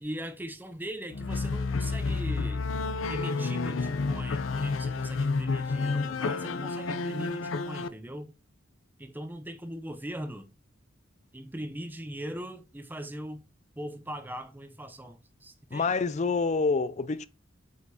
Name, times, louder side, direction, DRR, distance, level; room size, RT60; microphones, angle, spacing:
voice 1, 0.0-2.6 3.1-8.3 9.0-10.5 11.3-13.4 13.8-15.9, right 1 dB, 10° right, 0.6 m, -40 dB
sound 1, 1.1-7.9, left 4 dB, 80° left, 0.6 m, -30 dB
voice 2, 15.7-17.3, left 4 dB, 35° left, 0.4 m, -27 dB
8.0 x 5.0 x 2.7 m
head